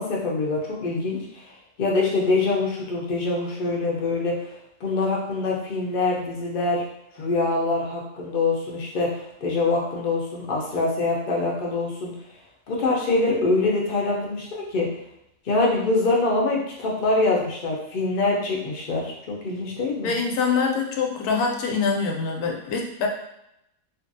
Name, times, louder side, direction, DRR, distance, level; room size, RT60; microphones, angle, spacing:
voice 1, 0.0-1.5 1.8-4.5 4.8-6.8 7.2-12.1 12.7-14.9 15.4-20.1, left 3 dB, 55° left, -3 dB, 0.5 m, -24 dB
voice 2, 20.0-23.1, left 5 dB, 85° left, 1 dB, 1.1 m, -24 dB
2.6 x 2.5 x 2.6 m, 0.82 s
omnidirectional pair, 1.6 m